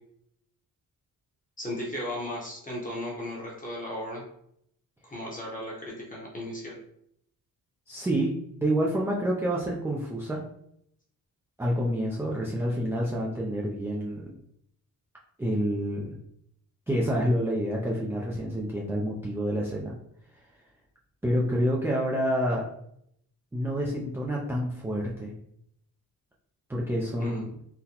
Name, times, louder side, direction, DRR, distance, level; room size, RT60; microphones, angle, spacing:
voice 1, 1.6-4.2 5.0-6.8 27.2-27.4, left 1 dB, 20° left, -3 dB, 0.8 m, -36 dB
voice 2, 7.9-10.4 11.6-14.3 15.4-16.2 16.9-19.9 21.2-22.6 23.5-25.3 26.7-27.5, equal, 5° right, -4 dB, 0.3 m, -28 dB
3.9 x 2.1 x 2.8 m, 0.72 s
wide cardioid pair, 140°, 37 cm